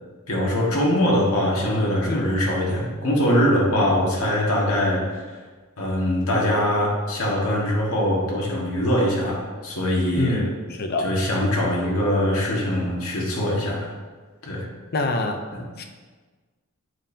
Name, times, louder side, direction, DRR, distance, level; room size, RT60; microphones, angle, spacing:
voice 1, 0.3-5.4 5.8-10.4 11.0-13.9 14.4-14.6 15.5-15.6, equal, 65° left, -3 dB, 1.6 m, -22 dB
voice 2, 10.2-10.5 10.8-11.1 14.9-15.4 15.8-15.9, left 2 dB, 45° left, 5 dB, 0.6 m, -25 dB
7.5 x 5.3 x 2.7 m, 1.4 s
head